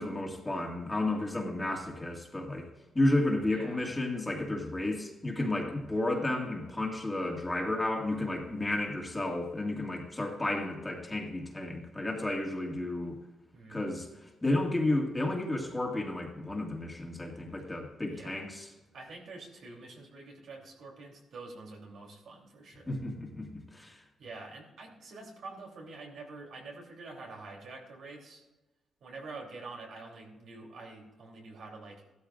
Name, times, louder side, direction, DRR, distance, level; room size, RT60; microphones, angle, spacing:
voice 1, 0.0-2.7 2.9-13.2 13.7-14.1 14.4-18.7 22.9-24.0, left 2 dB, 10° left, 0 dB, 1.9 m, -32 dB
voice 2, 3.5-3.9 13.5-13.9 17.4-17.5 18.0-18.5 18.9-23.0 24.2-28.4 29.0-32.0, right 3 dB, 70° right, -1 dB, 3.0 m, -47 dB
15.5 x 12.5 x 2.5 m, 1.1 s
cardioid pair, 125°, 0 cm